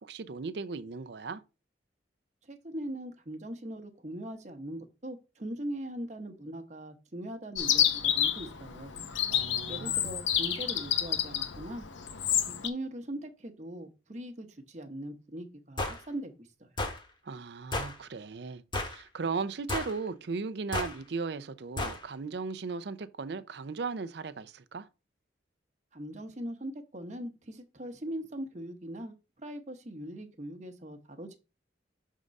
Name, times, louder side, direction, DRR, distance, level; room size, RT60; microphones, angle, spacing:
voice 1, 0.0-1.4 9.3-10.1 17.2-24.9, right 4 dB, 60° right, 0.5 m, -37 dB
voice 2, 2.5-8.9 9.7-11.8 12.4-16.7 25.9-31.4, right 1 dB, 40° right, 0.9 m, -40 dB
Chirp tweet, 7.6-12.7, left 9 dB, 80° left, 0.8 m, -29 dB
sound 1, 15.8-16.0 16.8-17.0 17.7-18.0 18.7-19.0 19.7-20.0 20.7-21.0 21.8-22.0, left 2 dB, 25° left, 1.0 m, -32 dB
6.5 x 3.7 x 5.2 m
head